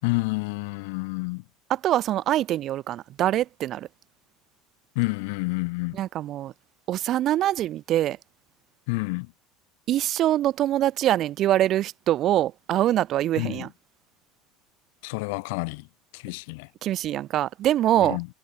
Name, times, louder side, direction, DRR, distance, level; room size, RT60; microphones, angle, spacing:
voice 1, 0.0-1.4 5.0-6.0 8.9-9.3 13.4-13.7 15.0-15.9 16.1-16.7 18.0-18.3, left 28 dB, 70° left, 6.9 m, -29 dB
voice 2, 1.7-3.9 5.9-6.5 6.9-8.2 9.9-13.7 16.8-18.2, right 13 dB, 35° right, 1.1 m, -24 dB
cardioid pair, 160°, 0 cm